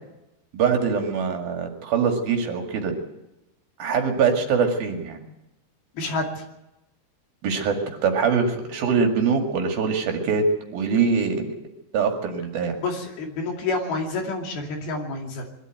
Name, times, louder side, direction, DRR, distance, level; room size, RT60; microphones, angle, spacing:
voice 1, 0.5-3.0 3.8-5.2 7.4-10.4 10.7-11.6 11.9-12.8, right 5 dB, 60° right, 3 dB, 3.7 m, -23 dB
voice 2, 5.9-6.4 12.8-15.5, left 3 dB, 65° left, 2 dB, 4.4 m, -28 dB
22.5 x 13.0 x 9.3 m, 0.91 s
omnidirectional pair, 4.9 m